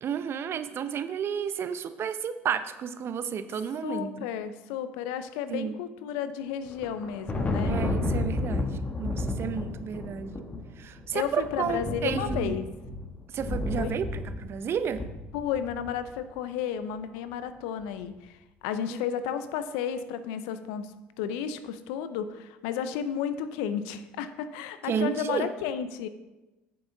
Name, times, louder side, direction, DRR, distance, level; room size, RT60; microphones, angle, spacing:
voice 1, 0.0-4.1 5.5-5.7 7.7-8.7 9.0-10.4 10.8-12.5 13.3-14.0 14.4-15.0 24.9-25.5, right 7 dB, 50° right, 11 dB, 0.6 m, -31 dB
voice 2, 3.8-7.8 11.1-12.7 13.8-13.9 15.3-18.4 18.6-26.1, left 8 dB, 80° left, 11 dB, 0.6 m, -32 dB
Thunder, 6.7-16.1, left 2 dB, 30° left, 1.4 m, -32 dB
8.5 x 7.0 x 3.9 m, 1.1 s
hypercardioid pair, 65°, 5 cm